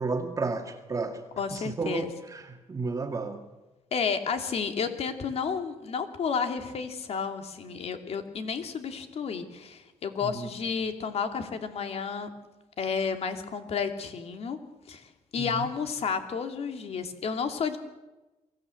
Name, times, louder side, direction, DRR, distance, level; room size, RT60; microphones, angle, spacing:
voice 1, 0.0-1.2 1.5-3.4 10.2-10.5 15.4-15.7, right 4 dB, 25° right, 4 dB, 2.0 m, -32 dB
voice 2, 1.4-2.1 3.9-12.3 12.8-14.6 14.9-17.8, left 6 dB, 55° left, 7 dB, 2.7 m, -31 dB
23.5 x 16.5 x 7.9 m, 1.1 s
cardioid pair, 105°, 13 cm